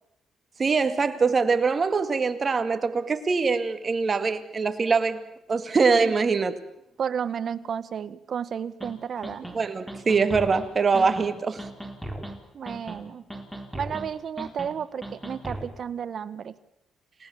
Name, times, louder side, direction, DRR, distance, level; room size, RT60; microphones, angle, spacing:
voice 1, 0.6-5.2 5.5-6.6 9.5-11.7, right 4 dB, 35° right, 2.2 m, -23 dB
voice 2, 7.0-9.5 12.5-13.2 13.7-16.5, right 7 dB, 55° right, 1.3 m, -32 dB
sound 1, 8.8-8.9 9.2-9.6 9.9-10.6 10.9-11.3 11.6-12.3 12.7-13.0 13.3-14.1 14.4-14.7 15.0-15.7, right 1 dB, 5° right, 4.2 m, -36 dB
29.0 x 18.0 x 7.2 m
cardioid pair, 90°, 0 cm